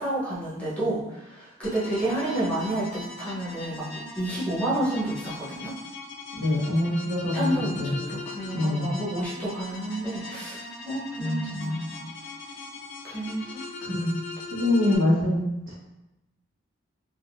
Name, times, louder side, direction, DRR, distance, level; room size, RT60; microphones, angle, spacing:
voice 1, 0.0-3.9 4.2-5.7 7.3-11.8 13.0-13.6, right 1 dB, 5° left, -8 dB, 0.8 m, -30 dB
sound 1, 1.6-15.0, left 2 dB, 65° left, 0.5 m, -40 dB
voice 2, 6.4-8.0 8.5-8.9 11.2-12.0 13.8-14.2 14.5-15.8, left 1 dB, 80° right, -5 dB, 1.1 m, -25 dB
3.4 x 2.5 x 2.5 m, 0.96 s
head